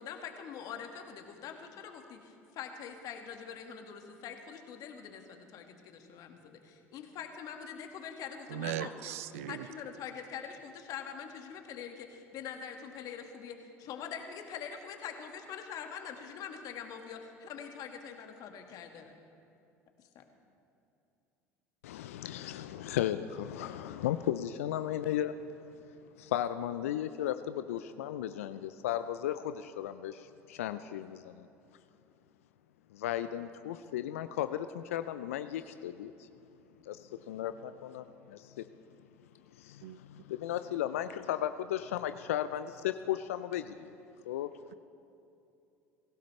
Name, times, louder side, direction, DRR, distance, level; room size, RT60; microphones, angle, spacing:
voice 1, 0.0-9.2 9.5-19.1 20.1-20.2, left 7 dB, 55° left, 4 dB, 1.8 m, -44 dB
voice 2, 8.5-9.7 39.8-40.0, right 12 dB, 75° right, 15 dB, 0.6 m, -38 dB
voice 3, 21.8-25.5 26.2-31.5 32.9-36.3 36.8-38.6 39.5-43.9 44.3-44.5, left 11 dB, 75° left, 11 dB, 0.5 m, -35 dB
24.0 x 16.0 x 3.3 m, 2.6 s
hypercardioid pair, 65°, 8 cm